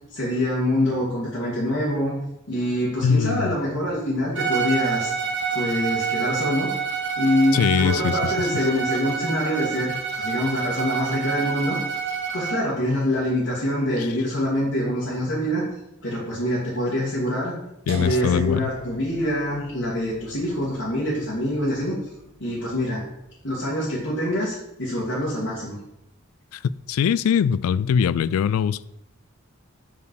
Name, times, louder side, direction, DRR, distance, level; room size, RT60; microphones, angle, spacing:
voice 1, 0.1-2.2 2.5-5.1 5.5-6.7 7.2-11.8 12.3-15.7 16.0-17.5 17.9-22.0 22.4-23.0 23.4-25.8, left 1 dB, 60° left, -7 dB, 2.2 m, -25 dB
voice 2, 3.0-3.5 7.5-8.5 17.9-18.7 26.5-26.6 26.9-28.8, left 7 dB, 90° left, 17 dB, 0.3 m, -22 dB
Bowed string instrument, 4.3-12.7, right 6 dB, 55° right, 1.1 m, -27 dB
sound 1, 17.9-23.8, right 3 dB, 75° right, 1.6 m, -41 dB
5.4 x 5.0 x 6.3 m, 0.85 s
head